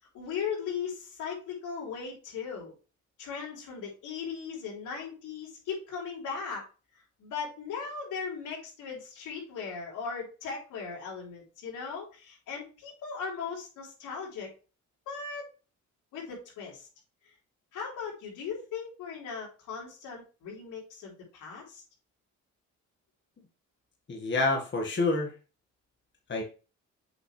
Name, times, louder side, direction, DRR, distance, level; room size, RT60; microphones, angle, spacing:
voice 1, 0.1-2.7 3.2-6.6 7.2-14.5 15.1-15.5 16.1-16.9 17.7-21.8, left 6 dB, 85° left, -2 dB, 3.6 m, -38 dB
voice 2, 24.1-25.3 26.3-26.4, left 3 dB, 40° left, 1 dB, 1.7 m, -27 dB
7.8 x 5.3 x 3.2 m, 0.34 s
cardioid pair, 90°, 30 cm